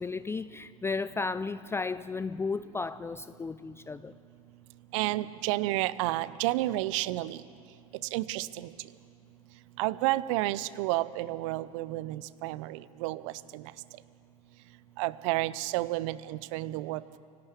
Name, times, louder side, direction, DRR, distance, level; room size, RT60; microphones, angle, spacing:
voice 1, 0.0-4.1, left 4 dB, 15° left, 14 dB, 0.5 m, -34 dB
voice 2, 4.9-7.4 8.1-8.7 9.8-13.6 15.0-17.2, right 17 dB, 60° right, 18 dB, 0.7 m, -31 dB
26.0 x 12.0 x 8.5 m, 2.3 s
figure-of-eight pair, 70°, 18 cm